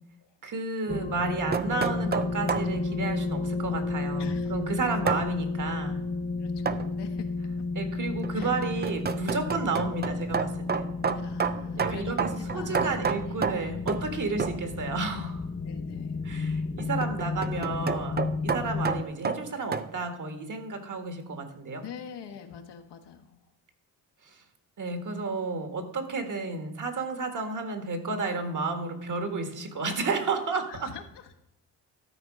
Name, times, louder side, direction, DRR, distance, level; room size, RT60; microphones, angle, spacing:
voice 1, 0.4-6.0 7.8-10.9 11.8-15.5 16.2-21.8 24.2-24.4 24.8-30.9, right 4 dB, 45° right, 7 dB, 1.7 m, -32 dB
sound 1, 0.9-19.0, left 4 dB, 20° left, 0.6 m, -32 dB
sound 2, 1.2-2.7 5.1-5.3 6.7-6.9 8.2-14.1 14.4-14.7 16.8-19.9, right 6 dB, 25° right, 0.5 m, -30 dB
voice 2, 4.2-4.5 6.4-7.3 8.3-8.5 11.2-13.5 15.6-16.2 21.8-23.4 30.7-31.3, left 7 dB, 80° left, 6 dB, 1.4 m, -44 dB
13.0 x 4.5 x 6.1 m, 0.84 s
cardioid pair, 100°, 41 cm